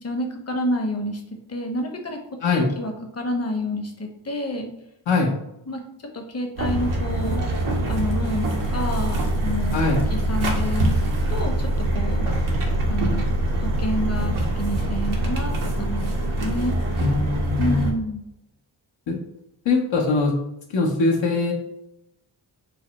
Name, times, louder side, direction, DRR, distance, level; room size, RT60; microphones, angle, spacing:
voice 1, 0.0-1.2 1.5-2.2 2.5-4.7 5.7-5.8 6.1-7.5 7.9-8.5 8.7-9.8 10.1-11.0 11.3-12.3 12.9-13.3 13.6-16.8 17.6-18.2, left 1 dB, 30° left, 3 dB, 0.9 m, -29 dB
sound 1, 6.6-17.9, right 1 dB, 80° right, 0.9 m, -24 dB
voice 2, 17.0-17.8 19.1-19.2 19.6-20.4 20.7-21.5, left 3 dB, 65° left, -2 dB, 0.9 m, -21 dB
3.3 x 2.0 x 4.0 m, 0.84 s
supercardioid pair, 40°, 49 cm